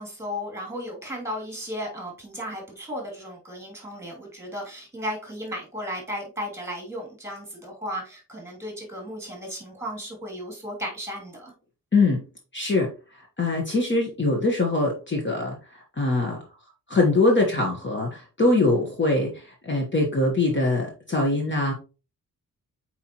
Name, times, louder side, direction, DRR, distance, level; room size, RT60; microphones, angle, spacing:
voice 1, 0.0-11.5, equal, 10° right, 0 dB, 2.7 m, -35 dB
voice 2, 11.9-12.2 12.5-12.9 13.4-15.6 16.0-16.4 16.9-21.7, left 2 dB, 35° left, 0 dB, 1.3 m, -23 dB
8.2 x 4.4 x 3.0 m, 0.33 s
wide cardioid pair, 170°, 35 cm